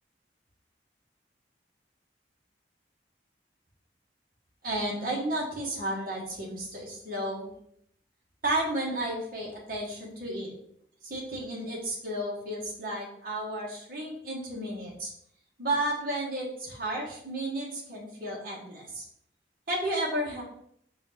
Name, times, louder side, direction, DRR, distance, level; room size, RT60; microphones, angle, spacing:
voice 1, 4.6-7.5 8.4-10.5 11.0-15.1 15.6-19.0 19.7-20.4, right 1 dB, 55° right, -3 dB, 1.3 m, -32 dB
4.3 x 2.7 x 4.1 m, 0.69 s
head